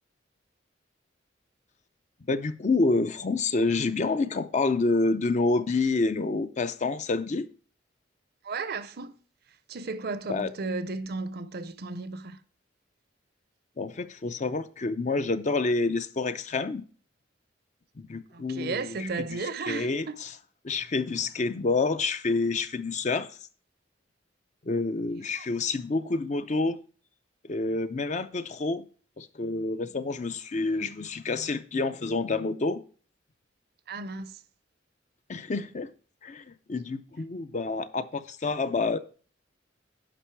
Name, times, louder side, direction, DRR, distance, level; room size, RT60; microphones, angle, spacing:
voice 1, 2.3-7.5 10.3-10.5 13.8-16.8 18.1-19.4 19.7-20.3 20.6-23.3 24.7-26.8 27.4-28.8 29.2-32.8 35.3-35.9 36.2-39.0, left 3 dB, 40° left, 0.5 m, -28 dB
voice 2, 8.4-9.1 9.7-12.4 18.3-20.2 25.4-25.5 33.9-34.3, right 3 dB, 55° right, 0.6 m, -34 dB
10.0 x 5.4 x 4.6 m
head